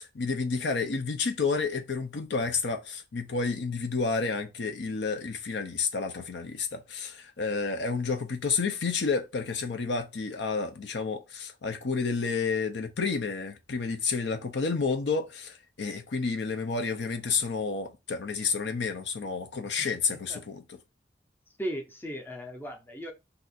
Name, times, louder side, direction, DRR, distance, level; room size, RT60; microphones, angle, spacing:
voice 1, 0.0-20.8, left 4 dB, 75° left, 0.6 m, -30 dB
voice 2, 21.6-23.1, equal, 10° left, 0.6 m, -36 dB
2.7 x 2.5 x 4.0 m
head